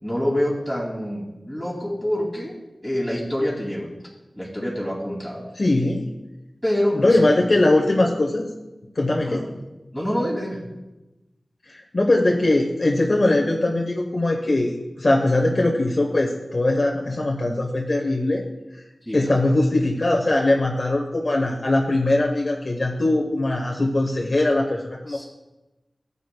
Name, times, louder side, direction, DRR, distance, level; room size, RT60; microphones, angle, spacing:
voice 1, 0.0-3.9 4.3-5.5 6.6-7.3 9.2-9.5 9.9-10.6 19.0-19.4 25.1-25.2, equal, 5° right, -6 dB, 2.4 m, -26 dB
voice 2, 5.6-6.1 6.9-8.4 8.9-9.5 11.6-18.4 19.1-25.2, left 2 dB, 50° left, 0 dB, 0.8 m, -21 dB
14.0 x 8.2 x 2.2 m, 1.0 s
wide cardioid pair, 70°, 0 cm